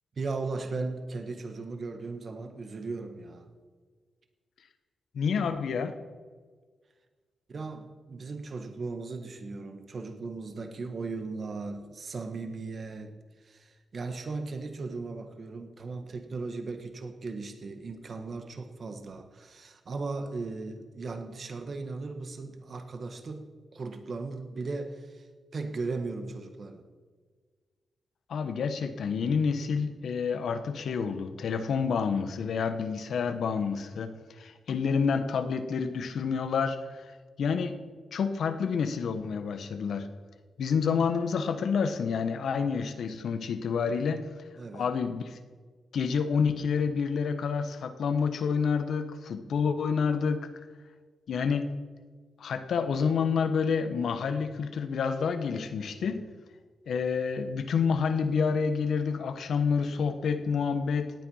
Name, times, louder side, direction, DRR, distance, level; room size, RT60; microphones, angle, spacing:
voice 1, 0.2-3.5 7.5-26.8 44.6-44.9, right 3 dB, 55° right, 7 dB, 1.6 m, -37 dB
voice 2, 5.1-6.0 28.3-37.0 37.4-37.8 38.1-40.1 40.6-44.2 44.7-45.4 45.9-50.5 51.3-51.7 52.4-56.3 56.9-61.1, left 6 dB, 75° left, 9 dB, 1.2 m, -28 dB
17.5 x 9.1 x 5.6 m, 1.5 s
cardioid pair, 75°, 0 cm